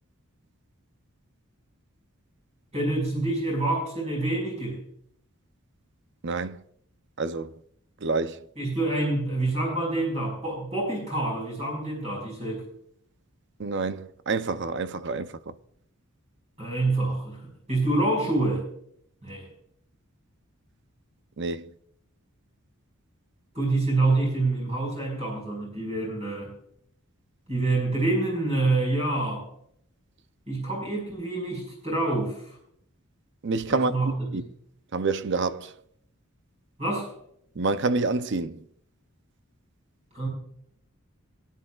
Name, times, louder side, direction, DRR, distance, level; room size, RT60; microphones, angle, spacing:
voice 1, 2.7-4.8 8.6-12.6 16.6-18.6 19.2-19.5 23.5-26.5 27.5-29.4 30.5-32.5 33.7-34.4 36.8-37.1 40.1-40.3, right 2 dB, 30° right, 5.3 m, -27 dB
voice 2, 6.2-6.6 7.2-7.5 8.0-8.4 13.6-15.5 21.4-21.6 33.4-34.4 34.9-35.7 37.6-38.6, right 3 dB, 55° right, 0.6 m, -28 dB
22.0 x 10.0 x 2.4 m
head